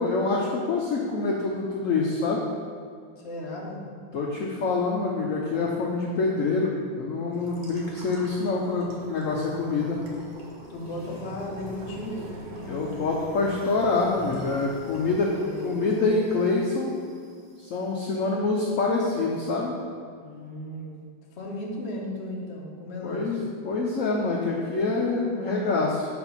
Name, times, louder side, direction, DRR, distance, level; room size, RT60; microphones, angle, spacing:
voice 1, 0.0-2.4 4.1-6.7 7.0-10.0 12.7-15.3 15.6-16.9 17.6-19.7 23.0-26.1, left 3 dB, 90° left, -2 dB, 0.7 m, -26 dB
voice 2, 3.2-3.9 10.7-13.0 15.3-15.9 20.2-20.9 21.3-23.4, left 1 dB, 45° left, -2 dB, 0.9 m, -36 dB
sound 1, 7.3-17.7, equal, 70° right, 0.4 m, -44 dB
4.4 x 4.3 x 5.6 m, 2.1 s
omnidirectional pair, 2.1 m